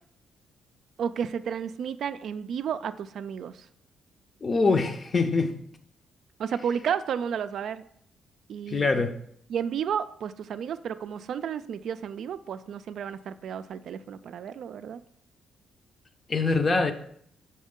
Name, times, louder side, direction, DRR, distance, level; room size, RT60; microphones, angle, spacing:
voice 1, 1.0-3.7 6.4-7.8 8.5-9.1 9.5-15.0, right 8 dB, 65° right, 12 dB, 0.3 m, -32 dB
voice 2, 4.4-5.6 8.7-9.2 16.3-16.9, left 3 dB, 35° left, 8 dB, 0.6 m, -24 dB
6.2 x 4.2 x 3.7 m, 0.67 s
cardioid pair, 90°, 0 cm